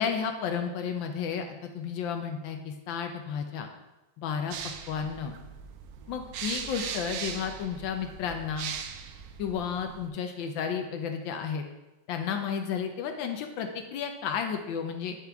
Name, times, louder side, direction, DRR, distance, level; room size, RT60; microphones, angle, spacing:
voice 1, 0.0-3.7 4.2-4.5 4.9-5.3 6.1-8.7 9.4-11.6 12.1-15.2, left 7 dB, 85° left, 5 dB, 1.4 m, -32 dB
sound 1, 4.5-10.1, right 7 dB, 70° right, 0.9 m, -39 dB
10.0 x 4.7 x 3.4 m, 1.0 s
omnidirectional pair, 2.0 m